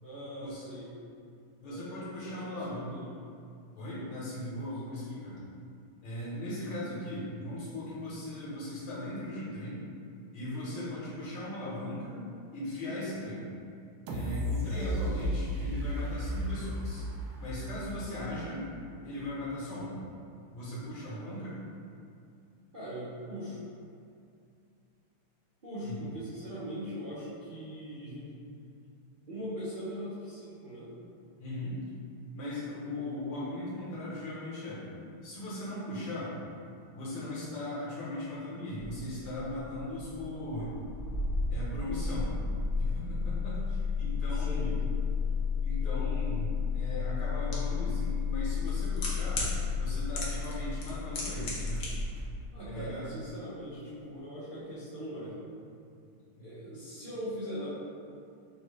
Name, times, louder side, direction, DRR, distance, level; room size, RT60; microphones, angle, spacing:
voice 1, 0.0-0.9 1.6-3.1 14.7-15.0 22.7-23.6 25.6-28.3 29.3-30.9 32.8-33.1 44.3-44.8 45.8-46.1 52.5-55.4 56.4-57.7, equal, 70° right, -12 dB, 0.4 m, -41 dB
voice 2, 1.6-2.9 3.7-5.4 6.0-9.8 10.3-12.2 12.5-13.4 14.1-17.0 17.4-18.7 19.0-20.0 20.5-21.5 25.8-26.0 31.4-31.8 32.3-34.9 35.2-36.3 36.9-40.7 41.5-42.3 42.8-44.7 45.6-49.4 49.8-51.8 52.6-53.1 56.4-56.5, left 1 dB, 75° left, -9 dB, 2.2 m, -38 dB
sound 1, 14.1-19.0 19.4-19.5, left 1 dB, 85° right, 0.9 m, -34 dB
Engine starting, 38.7-52.9, left 5 dB, 30° left, 0.9 m, -32 dB
sound 2, 47.5-47.6 48.5-49.5 50.1-50.5 50.8-51.9 52.1-52.2, left 3 dB, 60° left, 1.1 m, -34 dB
6.1 x 2.3 x 3.3 m, 2.4 s
omnidirectional pair, 2.4 m